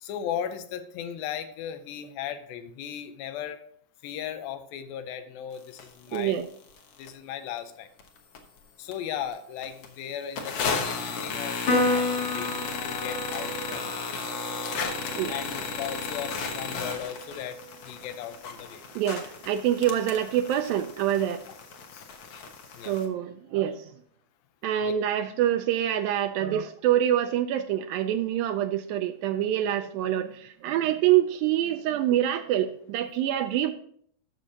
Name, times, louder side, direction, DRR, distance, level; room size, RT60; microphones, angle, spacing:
voice 1, 0.0-3.6 4.0-6.4 7.0-7.9 8.8-12.6 12.8-14.0 15.3-17.6 17.9-18.8 21.9-22.1 22.7-22.9 24.8-24.9, left 9 dB, 85° left, 10 dB, 2.5 m, -37 dB
sound 1, 5.8-5.9 6.1-6.2 6.7-7.1 7.6-7.7 8.0-8.6 8.9-9.0 9.3-9.4 9.6-9.9 10.4-23.1, left 4 dB, 65° left, 1.4 m, -34 dB
voice 2, 6.1-6.5 15.1-15.3 19.0-21.4 22.9-23.8 24.6-33.7, right 11 dB, 85° right, 6 dB, 2.3 m, -26 dB
Piano, 11.7-18.3, left 2 dB, 45° left, 1.7 m, -32 dB
14.0 x 6.5 x 2.8 m, 0.62 s
omnidirectional pair, 4.1 m